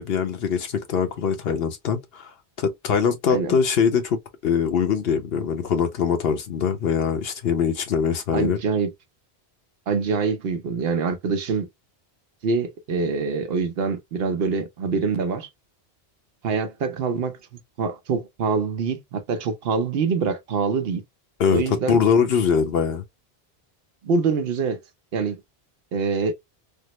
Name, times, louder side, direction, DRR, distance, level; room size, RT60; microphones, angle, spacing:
voice 1, 0.0-2.3 2.6-8.6 21.4-23.0, left 6 dB, 70° left, 1.0 m, -22 dB
voice 2, 8.3-8.9 9.9-11.7 12.4-15.5 16.4-17.4 17.8-21.0 21.5-22.0 24.0-24.8 25.1-25.4 25.9-26.3, right 5 dB, 70° right, 0.9 m, -25 dB
3.6 x 2.0 x 2.9 m
omnidirectional pair, 1.1 m